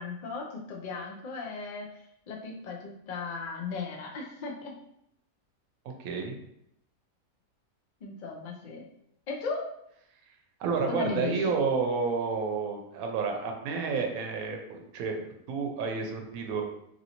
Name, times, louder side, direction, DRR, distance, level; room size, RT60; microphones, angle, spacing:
voice 1, 0.0-4.8 8.0-8.8 9.3-9.7 10.9-11.5, left 4 dB, 85° left, 0 dB, 0.4 m, -36 dB
voice 2, 6.0-6.4 10.6-16.6, right 5 dB, 80° right, 3 dB, 1.0 m, -30 dB
3.0 x 2.6 x 2.8 m, 0.76 s
omnidirectional pair, 1.5 m